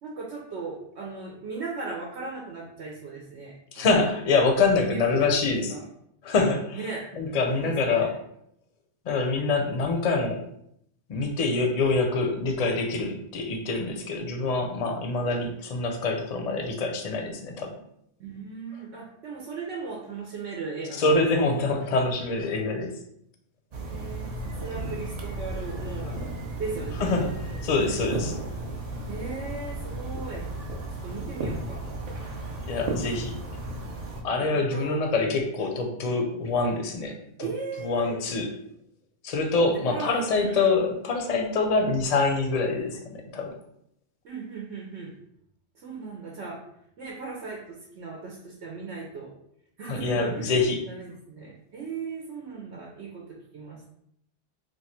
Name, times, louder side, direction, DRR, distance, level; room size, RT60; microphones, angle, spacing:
voice 1, 0.0-3.9 4.8-5.8 6.7-7.1 7.6-8.1 18.2-21.5 23.9-26.3 26.6-27.6 28.2-28.6 29.1-30.5 31.0-32.0 34.4-35.0 37.4-38.2 39.9-40.6 44.2-45.1 45.7-46.6 47.0-49.3 49.8-50.5 50.9-53.9, right 4 dB, 85° right, -2 dB, 1.0 m, -37 dB
voice 2, 3.7-5.8 6.2-6.9 7.1-8.2 9.1-10.4 11.1-17.8 21.0-23.0 27.0-27.4 27.6-28.3 32.7-33.4 34.2-37.5 37.8-38.5 39.2-43.5 49.8-50.8, left 3 dB, 50° left, 4 dB, 0.5 m, -25 dB
sound 1, 23.7-34.2, right 2 dB, 45° right, 0.6 m, -34 dB
3.0 x 2.3 x 4.2 m, 0.73 s
omnidirectional pair, 1.1 m